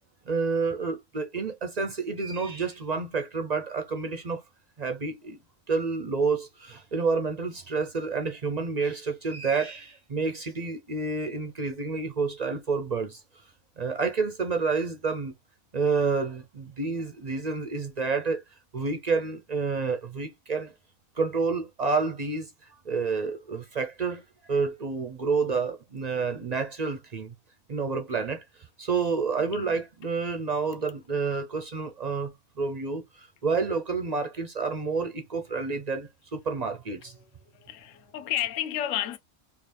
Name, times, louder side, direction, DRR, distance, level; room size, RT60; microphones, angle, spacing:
voice 1, 0.3-4.4 4.8-5.4 5.7-13.2 13.8-15.3 15.7-18.4 18.7-20.7 21.2-22.5 22.8-27.3 27.7-28.4 28.8-37.1, right 4 dB, 55° right, 0.4 m, -29 dB
voice 2, 37.1-39.2, left 12 dB, 70° left, 0.9 m, -32 dB
3.8 x 2.5 x 3.3 m
omnidirectional pair, 1.5 m